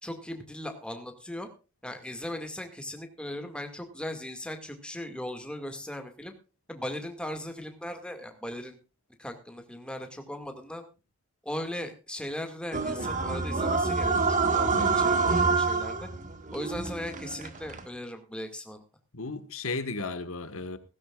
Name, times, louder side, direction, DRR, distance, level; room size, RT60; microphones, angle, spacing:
voice 1, 0.0-1.5 1.8-6.3 6.7-8.8 9.2-10.8 11.4-16.1 16.5-18.8, left 1 dB, 5° left, 2.1 m, -38 dB
sound 1, 12.7-17.9, right 4 dB, 35° right, 1.7 m, -27 dB
voice 2, 14.7-15.0 19.1-20.8, left 3 dB, 75° left, 1.6 m, -34 dB
16.5 x 15.5 x 2.4 m
head